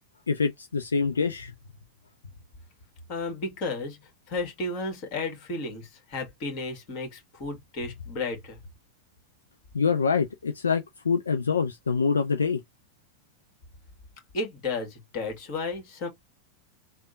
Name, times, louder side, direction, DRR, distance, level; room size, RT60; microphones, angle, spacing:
voice 1, 0.3-1.5 9.7-12.6, left 5 dB, 75° left, 0.4 m, -25 dB
voice 2, 3.1-8.6 14.3-16.1, left 3 dB, 40° left, 1.7 m, -33 dB
3.4 x 2.2 x 3.7 m
figure-of-eight pair, 90°, 0 cm